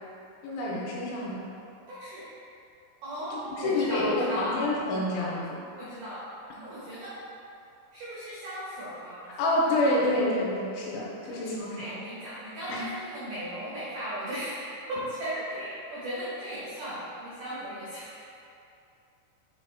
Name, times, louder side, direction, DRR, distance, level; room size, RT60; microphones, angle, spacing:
voice 1, 0.4-1.4 3.3-5.6 9.4-11.9 12.7-12.8, left 1 dB, 80° left, -4 dB, 2.9 m, -28 dB
voice 2, 1.9-2.2 3.0-4.6 5.8-6.3 6.6-7.2 7.9-9.4 11.2-11.4 11.8-18.4, equal, 85° right, -10 dB, 1.8 m, -36 dB
7.6 x 3.2 x 4.0 m, 2.7 s
omnidirectional pair, 5.6 m